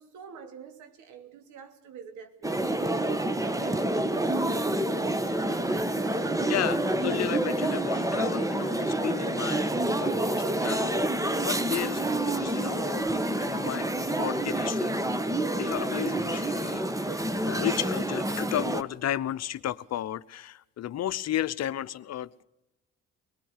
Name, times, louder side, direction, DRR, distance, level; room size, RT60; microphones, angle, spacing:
voice 1, 0.0-2.5 2.8-6.4, right 6 dB, 80° right, 2.8 m, -47 dB
sound 1, 2.4-18.8, right 1 dB, 10° right, 1.3 m, -28 dB
voice 2, 6.5-11.0 11.4-15.0 15.5-22.4, left 12 dB, 60° left, 0.9 m, -34 dB
24.0 x 19.0 x 6.7 m
supercardioid pair, 80°, 30 cm